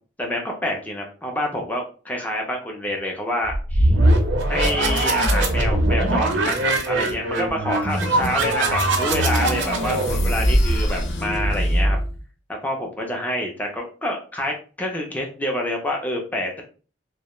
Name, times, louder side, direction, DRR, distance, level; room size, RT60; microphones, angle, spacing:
voice 1, 0.2-3.9 4.5-12.0 12.6-16.6, left 1 dB, 10° left, 0 dB, 0.3 m, -27 dB
sound 1, 3.5-11.1, right 1 dB, 90° right, 0.5 m, -21 dB
sound 2, 7.9-12.2, equal, 85° left, 0.5 m, -27 dB
2.1 x 2.0 x 2.9 m, 0.38 s
head